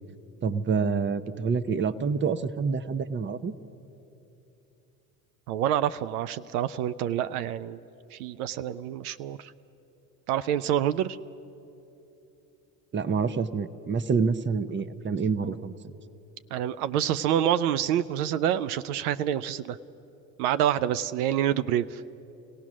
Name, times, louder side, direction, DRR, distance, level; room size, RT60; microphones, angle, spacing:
voice 1, 0.4-3.5 12.9-15.7, right 5 dB, 25° right, 13 dB, 0.8 m, -27 dB
voice 2, 5.5-7.8 8.1-9.5 10.3-11.2 16.5-19.8 20.4-22.0, right 10 dB, 85° right, 14 dB, 0.6 m, -27 dB
28.0 x 17.0 x 6.2 m, 2.9 s
hypercardioid pair, 80°, 44 cm